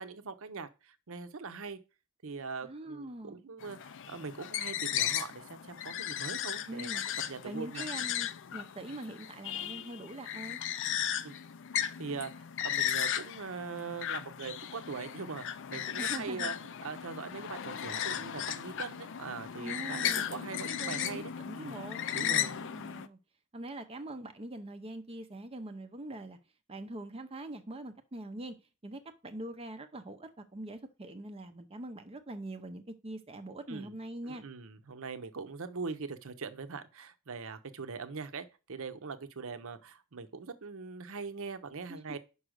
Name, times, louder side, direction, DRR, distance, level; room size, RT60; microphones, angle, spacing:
voice 1, 0.0-1.8 2.2-6.9 7.3-7.9 11.2-11.4 11.7-16.5 16.8-21.3 21.6-21.8 22.1-22.5 33.7-33.9 34.2-42.2, right 4 dB, 65° right, 0.7 m, -42 dB
voice 2, 2.6-3.4 6.7-7.0 7.4-10.6 16.0-16.5 19.6-23.2 23.5-26.4 26.7-28.6 28.8-34.4 41.9-42.2, right 1 dB, 25° right, 0.6 m, -43 dB
sound 1, 3.6-23.1, left 10 dB, 60° left, 0.5 m, -36 dB
5.5 x 5.0 x 6.3 m
head